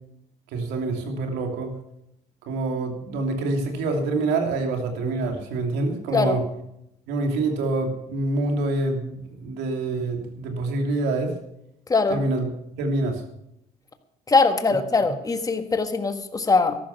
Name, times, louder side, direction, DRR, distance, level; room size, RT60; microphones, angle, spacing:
voice 1, 0.5-1.7 2.5-6.4 7.1-11.3 12.1-12.4 12.8-13.2, right 2 dB, 90° right, 4 dB, 2.8 m, -26 dB
voice 2, 11.9-12.2 14.3-16.8, left 3 dB, 20° left, 8 dB, 1.6 m, -21 dB
14.0 x 12.0 x 5.8 m, 0.81 s
cardioid pair, 110°, 17 cm